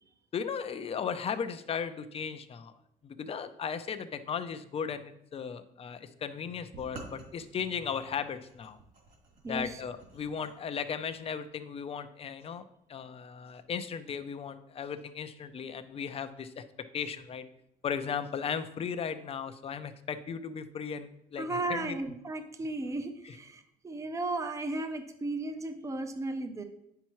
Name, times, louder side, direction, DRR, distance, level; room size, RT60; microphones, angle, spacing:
voice 1, 0.3-2.7 3.0-8.8 9.5-12.6 12.9-16.6 16.9-17.5 17.8-22.0, left 7 dB, 35° left, 10 dB, 0.6 m, -36 dB
sound 1, 6.7-10.5, right 3 dB, 50° right, 2.4 m, -50 dB
voice 2, 9.4-9.8 21.4-26.6, right 2 dB, 20° right, 7 dB, 0.6 m, -35 dB
8.8 x 5.7 x 3.1 m, 0.77 s
cardioid pair, 110°, 17 cm